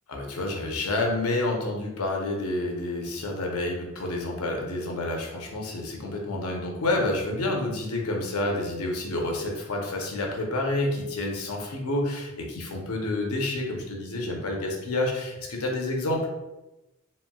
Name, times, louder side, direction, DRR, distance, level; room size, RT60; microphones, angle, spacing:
voice 1, 0.1-16.3, left 2 dB, 85° left, 0 dB, 0.6 m, -29 dB
3.0 x 2.7 x 2.2 m, 0.99 s
head